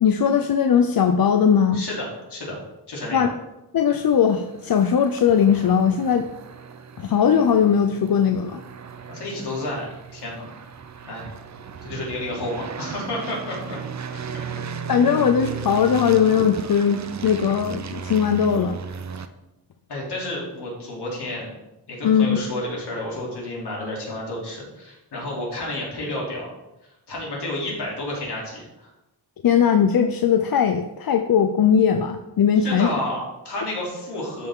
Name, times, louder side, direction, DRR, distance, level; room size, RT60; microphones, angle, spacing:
voice 1, 0.0-1.8 3.1-3.3 3.7-6.3 7.0-8.6 14.9-18.8 22.0-22.4 29.4-32.9, left 7 dB, 60° left, 6 dB, 0.6 m, -19 dB
voice 2, 1.7-2.6 2.9-3.3 9.1-9.9 10.1-10.5 11.0-11.3 11.8-13.8 14.1-14.2 15.9-16.0 19.9-21.5 21.9-26.5 26.8-28.9 32.5-34.5, left 1 dB, 80° left, -4 dB, 3.2 m, -31 dB
sound 1, 3.9-19.3, right 6 dB, 45° right, 0.6 m, -36 dB
13.0 x 5.7 x 3.7 m, 0.95 s
wide cardioid pair, 140°, 40 cm